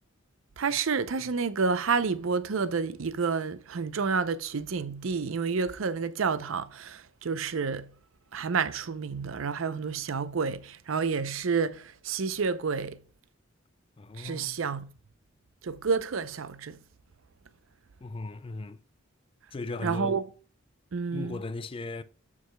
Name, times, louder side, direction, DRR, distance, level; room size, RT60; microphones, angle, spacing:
voice 1, 0.6-7.9 8.3-13.0 14.2-14.9 15.6-16.8 19.8-20.2 20.9-21.4, right 5 dB, 75° right, 0.6 m, -29 dB
voice 2, 14.0-14.6 18.0-18.8 19.5-20.2 21.1-22.0, left 3 dB, 25° left, 0.4 m, -37 dB
12.5 x 4.8 x 2.2 m
head